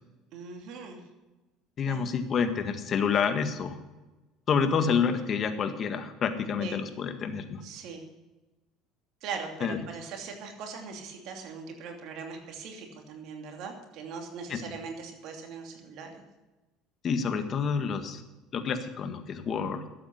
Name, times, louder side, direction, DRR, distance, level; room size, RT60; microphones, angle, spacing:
voice 1, 0.3-1.0 1.8-2.1 6.6-6.8 7.6-8.0 9.2-16.2, right 5 dB, 65° right, 3 dB, 2.8 m, -40 dB
voice 2, 1.8-3.8 4.5-7.6 9.6-9.8 14.5-14.6 17.0-18.2 18.5-19.8, left 6 dB, 45° left, 8 dB, 1.8 m, -28 dB
13.0 x 8.4 x 8.4 m, 1.1 s
hypercardioid pair, 80°, 0 cm